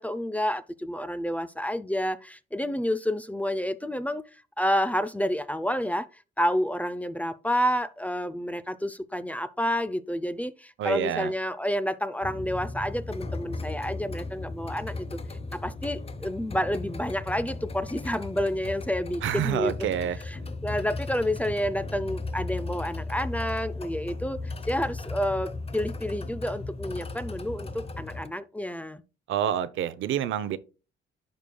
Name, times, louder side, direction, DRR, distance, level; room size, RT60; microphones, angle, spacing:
voice 1, 0.0-4.2 4.6-15.1 15.5-20.0 20.3-29.0, equal, 5° left, 0.5 m, -29 dB
voice 2, 10.8-11.3 19.2-20.2 29.3-30.6, right 10 dB, 75° right, 0.7 m, -27 dB
sound 1, 12.2-28.3, left 3 dB, 30° left, 0.8 m, -36 dB
11.5 x 5.2 x 2.3 m
cardioid pair, 90°, 20 cm